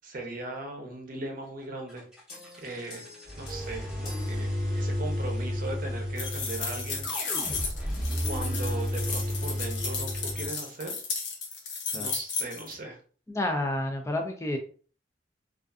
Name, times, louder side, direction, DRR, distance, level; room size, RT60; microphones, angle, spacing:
voice 1, 0.0-2.1 2.6-3.1 3.4-7.1 8.2-10.9 11.9-13.0, right 2 dB, 50° right, 2 dB, 0.6 m, -38 dB
sound 1, 1.9-10.5, equal, 5° right, 0.7 m, -32 dB
sound 2, 2.3-5.3, left 1 dB, 60° left, 1.0 m, -47 dB
sound 3, 6.2-12.7, left 5 dB, 85° left, 0.7 m, -34 dB
voice 2, 13.3-14.6, left 1 dB, 15° left, 3 dB, 0.3 m, -30 dB
2.4 x 2.4 x 2.3 m, 0.41 s
head